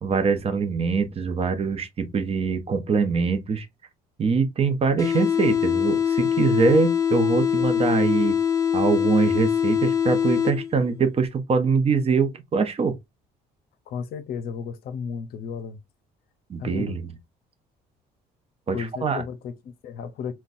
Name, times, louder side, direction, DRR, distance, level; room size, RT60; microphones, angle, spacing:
voice 1, 0.0-3.7 4.2-8.4 8.7-13.0 16.5-17.0 18.7-18.8 19.0-19.2, right 5 dB, 35° right, 0.7 m, -23 dB
sound 1, 5.0-11.0, left 8 dB, 20° left, 0.4 m, -23 dB
voice 2, 13.9-15.8 16.6-17.0 18.7-20.3, left 6 dB, 65° left, 0.6 m, -33 dB
3.7 x 2.2 x 2.5 m
cardioid pair, 110°, 17 cm